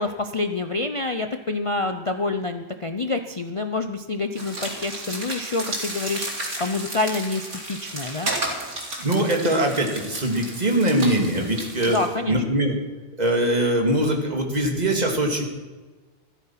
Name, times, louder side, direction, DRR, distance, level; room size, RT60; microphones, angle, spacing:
voice 1, 0.0-6.3 6.6-8.3 11.9-12.4, left 3 dB, 35° left, 7 dB, 0.6 m, -27 dB
sound 1, 4.4-12.1, right 1 dB, 80° right, 3.5 m, -33 dB
voice 2, 9.0-12.0 12.3-12.7 13.2-15.4, right 1 dB, 35° right, 2 dB, 2.4 m, -22 dB
14.0 x 13.5 x 5.8 m, 1.3 s
omnidirectional pair, 1.2 m